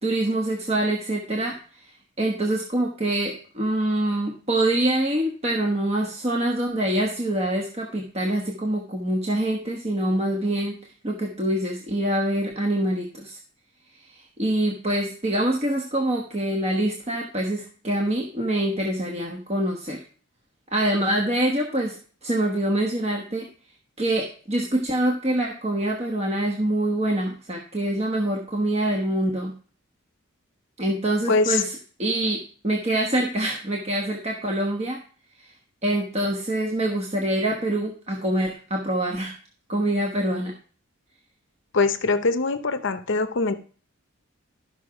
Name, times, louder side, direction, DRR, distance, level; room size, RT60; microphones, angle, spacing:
voice 1, 0.0-13.4 13.9-20.0 20.7-23.5 24.0-29.5 30.8-35.0 35.4-35.5 35.8-39.3 39.7-40.5, right 1 dB, 30° right, 1 dB, 1.2 m, -25 dB
voice 2, 31.3-31.6 41.7-43.5, left 3 dB, 55° left, 10 dB, 0.7 m, -22 dB
13.0 x 5.8 x 4.8 m, 0.42 s
head